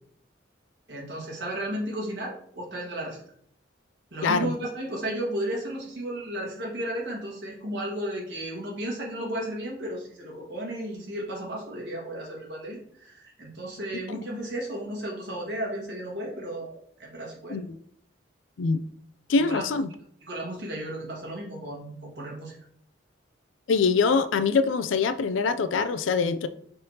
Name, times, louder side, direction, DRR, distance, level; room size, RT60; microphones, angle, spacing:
voice 1, 0.9-3.2 4.1-17.6 19.3-19.6 20.2-22.5, right 1 dB, 60° right, -3 dB, 1.6 m, -34 dB
voice 2, 4.2-4.5 17.5-17.8 18.6-18.8 19.3-19.9 23.7-26.5, left 4 dB, 90° left, 11 dB, 0.4 m, -24 dB
5.4 x 3.3 x 2.8 m, 0.63 s
head